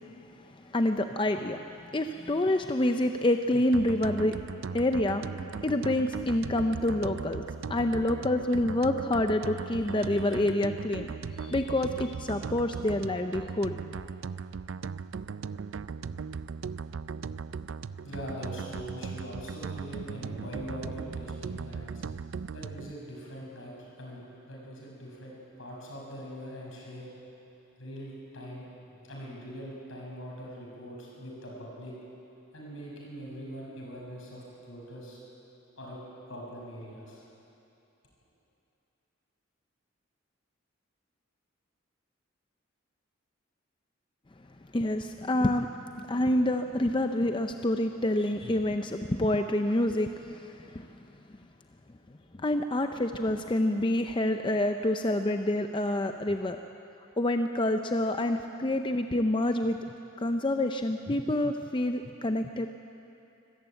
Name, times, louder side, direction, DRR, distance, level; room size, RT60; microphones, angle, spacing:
voice 1, 0.0-4.4 4.7-5.3 5.6-11.1 11.4-13.8 44.7-45.7 46.0-50.9 52.4-56.6 57.2-59.8 60.2-62.7, left 1 dB, 25° left, 6 dB, 0.5 m, -27 dB
sound 1, 3.7-22.9, right 5 dB, 70° right, 0.4 m, -38 dB
voice 2, 18.0-27.1 27.8-31.9 32.5-35.2 35.8-36.0 36.3-37.2, equal, 70° left, -3 dB, 6.8 m, -42 dB
24.0 x 14.0 x 9.1 m, 2.8 s
head